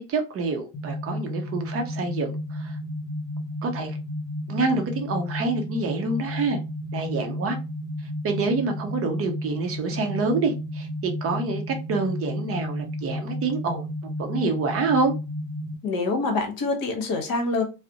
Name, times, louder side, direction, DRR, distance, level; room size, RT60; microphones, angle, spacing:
voice 1, 0.0-2.8 3.6-3.9 4.5-6.6 6.9-7.6 8.2-13.8 14.2-15.1, right 3 dB, 30° right, 0.5 m, -27 dB
sound 1, 0.7-15.7, left 1 dB, 20° left, 0.4 m, -32 dB
voice 2, 15.8-17.6, left 3 dB, 45° left, 0.9 m, -25 dB
2.4 x 2.0 x 2.6 m
hypercardioid pair, 95°, 49 cm